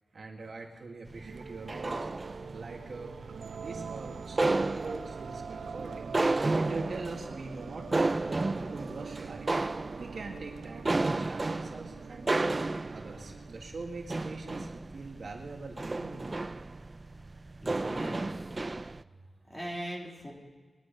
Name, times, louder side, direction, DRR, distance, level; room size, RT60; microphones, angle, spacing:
voice 1, 0.1-2.1 2.5-3.1 3.6-6.1 6.4-12.5 12.9-16.5 19.0-19.6, right 3 dB, 65° right, 1 dB, 2.0 m, -43 dB
sound 1, 1.1-19.0, right 2 dB, 30° right, 0.4 m, -33 dB
sound 2, 1.2-14.1, right 6 dB, 90° right, 0.5 m, -44 dB
sound 3, 9.5-17.5, left 2 dB, 65° left, 4.3 m, -60 dB
voice 2, 17.6-18.6 19.5-20.3, equal, 15° left, -2 dB, 3.0 m, -40 dB
22.0 x 10.0 x 5.3 m, 1.5 s
wide cardioid pair, 135°, 0 cm